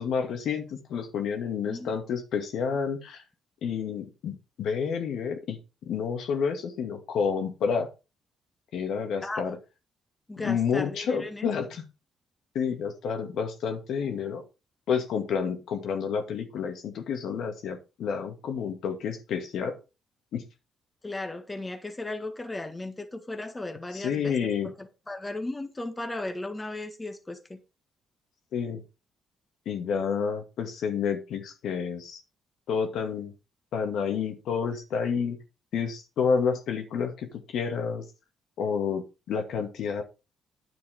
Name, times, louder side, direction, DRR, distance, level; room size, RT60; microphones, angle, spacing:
voice 1, 0.0-3.2 3.6-5.6 5.9-7.9 8.7-9.6 10.4-11.8 12.5-14.4 14.9-19.8 20.3-20.4 23.9-24.7 28.5-28.8 29.7-32.2 32.7-33.3 33.7-35.4 35.7-38.1 38.6-40.0, left 6 dB, 75° left, 2.2 m, -29 dB
voice 2, 10.3-11.5 21.0-24.4 24.6-27.6, left 2 dB, 15° left, 1.6 m, -36 dB
9.9 x 6.9 x 5.1 m
cardioid pair, 90°, 0 cm